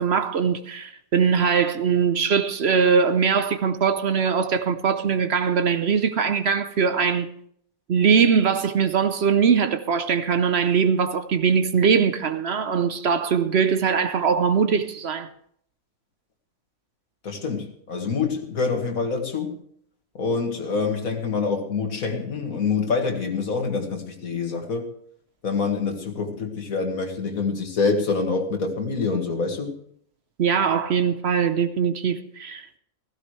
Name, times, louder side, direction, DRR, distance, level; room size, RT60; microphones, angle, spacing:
voice 1, 0.0-7.3 7.9-15.3 30.4-32.8, right 6 dB, 55° right, 0.9 m, -21 dB
voice 2, 17.2-19.6 20.1-24.9 25.4-29.7, left 4 dB, 80° left, 2.3 m, -26 dB
16.0 x 15.5 x 3.2 m
omnidirectional pair, 1.4 m